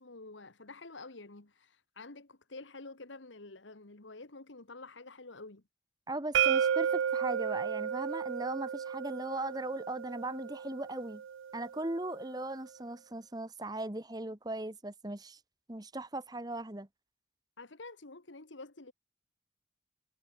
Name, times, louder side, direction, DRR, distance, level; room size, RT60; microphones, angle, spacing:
voice 1, 0.0-5.6 17.6-18.9, left 3 dB, 85° left, 1.9 m, -49 dB
voice 2, 6.1-11.2 11.5-15.4 15.7-16.9, right 2 dB, 20° right, 1.2 m, -38 dB
sound 1, 6.3-12.1, right 8 dB, 90° right, 0.4 m, -33 dB
head